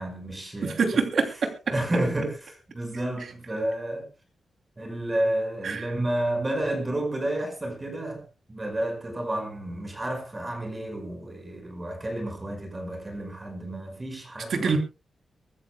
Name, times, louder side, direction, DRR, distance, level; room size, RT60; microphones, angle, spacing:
voice 1, 0.0-1.0 1.7-4.1 4.8-8.2 8.5-14.8, right 1 dB, 20° right, 5.3 m, -30 dB
voice 2, 0.6-1.5 5.6-5.8 14.5-14.8, right 5 dB, 55° right, 2.9 m, -25 dB
24.0 x 13.5 x 2.2 m
wide cardioid pair, 160°, 0 cm